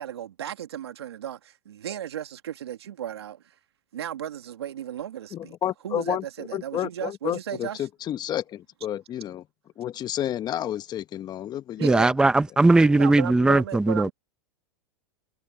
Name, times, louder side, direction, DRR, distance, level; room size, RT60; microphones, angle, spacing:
voice 1, 0.0-3.5 3.9-5.6 5.8-7.9 11.8-12.2 12.8-14.1, right 10 dB, 90° right, 2.6 m, -35 dB
voice 2, 5.3-9.4 9.8-11.9, left 11 dB, 30° left, 1.2 m, -31 dB
voice 3, 11.8-14.1, right 2 dB, 5° right, 0.7 m, -19 dB
hypercardioid pair, 115°, 13 cm